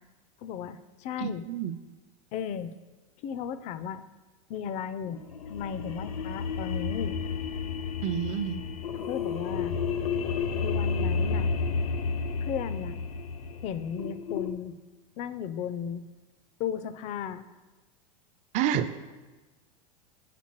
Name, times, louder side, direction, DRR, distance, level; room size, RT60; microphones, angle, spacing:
voice 1, 0.4-1.5 2.3-2.7 3.2-4.0 4.5-5.2 5.5-7.2 8.9-9.8 10.6-11.5 12.4-13.0 13.5-14.8 15.2-16.0 16.6-17.4, left 8 dB, 40° left, 13 dB, 0.4 m, -35 dB
voice 2, 1.2-1.8 8.0-8.6 18.5-18.9, right 9 dB, 40° right, 12 dB, 0.4 m, -29 dB
sound 1, 5.1-14.5, left 5 dB, 90° left, 0.5 m, -31 dB
6.9 x 5.9 x 3.0 m, 1.2 s
hypercardioid pair, 115°, 18 cm